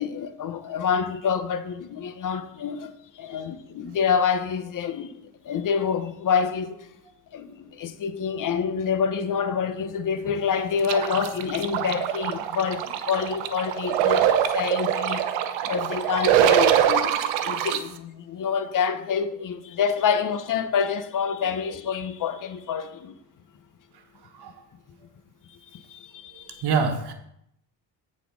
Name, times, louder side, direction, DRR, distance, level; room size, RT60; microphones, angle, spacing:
voice 1, 0.0-6.8 7.3-14.3 14.5-15.3 15.6-23.2 25.5-26.6, left 6 dB, 45° left, 0.9 m, -27 dB
sound 1, 10.8-17.8, right 10 dB, 90° right, 0.8 m, -23 dB
voice 2, 24.3-24.6 26.5-27.1, right 5 dB, 55° right, 1.5 m, -27 dB
8.5 x 4.2 x 6.2 m
cardioid pair, 85°, 46 cm